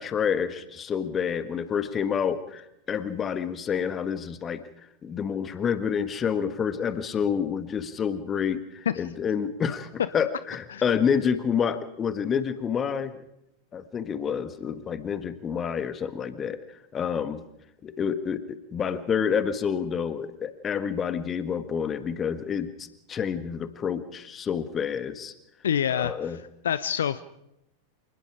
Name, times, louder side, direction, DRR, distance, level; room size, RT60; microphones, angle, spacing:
voice 1, 0.0-4.6 5.0-13.2 13.7-16.6 16.9-17.4 17.8-25.3 25.9-26.4, left 7 dB, 25° left, 12 dB, 1.6 m, -28 dB
voice 2, 25.6-26.1 26.6-27.2, left 9 dB, 65° left, 15 dB, 0.7 m, -25 dB
27.0 x 20.0 x 5.0 m, 0.83 s
figure-of-eight pair, 90°, 0 cm